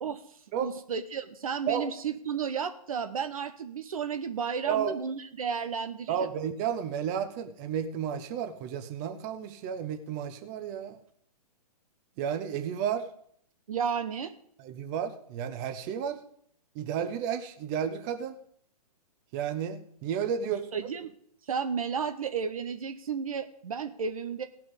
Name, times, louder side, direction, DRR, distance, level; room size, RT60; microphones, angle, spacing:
voice 1, 0.0-6.3 13.7-14.3 20.4-21.1 21.5-24.4, right 6 dB, 60° right, 9 dB, 0.9 m, -33 dB
voice 2, 4.6-4.9 6.1-11.0 12.2-13.1 14.6-16.2 16.7-18.3 19.3-20.6, right 8 dB, 30° right, 9 dB, 0.9 m, -32 dB
17.5 x 6.0 x 5.1 m, 0.62 s
figure-of-eight pair, 120°, 20 cm